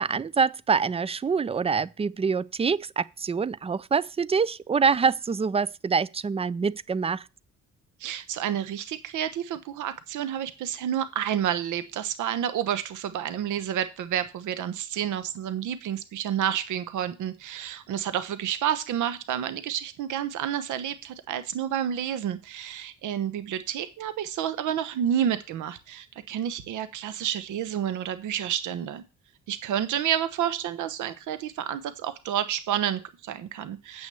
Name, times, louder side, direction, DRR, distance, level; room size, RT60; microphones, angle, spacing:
voice 1, 0.0-7.3, right 5 dB, 20° right, 0.4 m, -25 dB
voice 2, 8.0-29.0 29.5-34.1, right 10 dB, 80° right, 1.0 m, -30 dB
8.3 x 6.3 x 6.9 m
cardioid pair, 90°, 30 cm